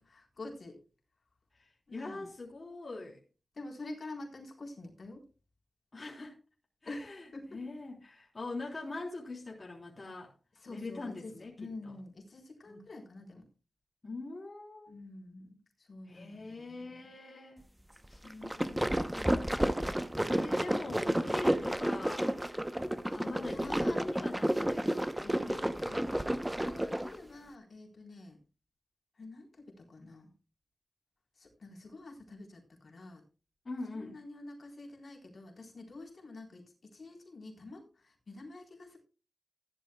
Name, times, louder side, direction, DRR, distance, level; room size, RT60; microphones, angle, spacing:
voice 1, 0.1-0.8 1.9-2.3 3.5-5.2 6.9-7.6 10.6-13.5 14.9-17.1 18.1-19.5 21.0-21.4 23.0-24.0 25.6-26.1 26.5-28.4 29.2-30.3 31.4-33.2 33.9-39.0, left 2 dB, 60° left, 3.9 m, -48 dB
voice 2, 1.6-3.2 5.9-6.4 6.8-10.3 10.7-11.9 12.7-12.9 14.0-14.9 16.0-17.7 18.6-19.1 20.2-22.4 23.1-25.7 33.7-34.2, left 2 dB, 45° left, 3.4 m, -43 dB
sound 1, 18.2-27.2, right 1 dB, 10° right, 0.8 m, -31 dB
15.5 x 11.5 x 2.3 m
wide cardioid pair, 90°, 0 cm